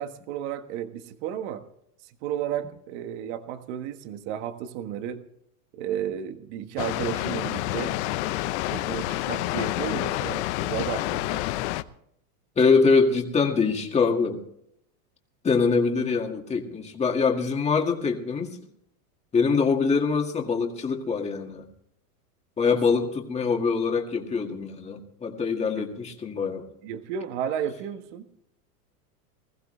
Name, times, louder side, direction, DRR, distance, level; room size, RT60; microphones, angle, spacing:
voice 1, 0.0-1.6 2.0-5.2 5.7-8.0 8.7-11.4 22.6-22.8 25.8-25.9 26.8-28.3, right 9 dB, 45° right, 8 dB, 1.6 m, -33 dB
Water, 6.8-11.8, left 16 dB, 45° left, 0.8 m, -28 dB
voice 2, 12.6-14.4 15.4-18.6 19.3-21.7 22.6-26.7, left 5 dB, 15° left, 2 dB, 2.0 m, -24 dB
20.5 x 15.0 x 3.3 m, 0.72 s
supercardioid pair, 150°, 46 cm